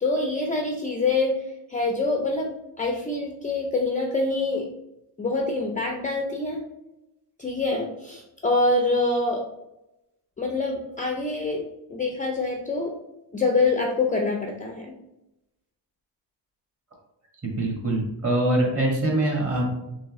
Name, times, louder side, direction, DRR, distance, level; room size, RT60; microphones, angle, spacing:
voice 1, 0.0-4.7 5.2-6.6 7.4-9.4 10.4-11.6 11.9-12.9 13.3-14.9, left 3 dB, 20° left, 1 dB, 0.4 m, -25 dB
voice 2, 17.4-19.7, right 1 dB, 30° right, -1 dB, 1.5 m, -24 dB
3.5 x 3.4 x 3.0 m, 0.89 s
cardioid pair, 110°, 46 cm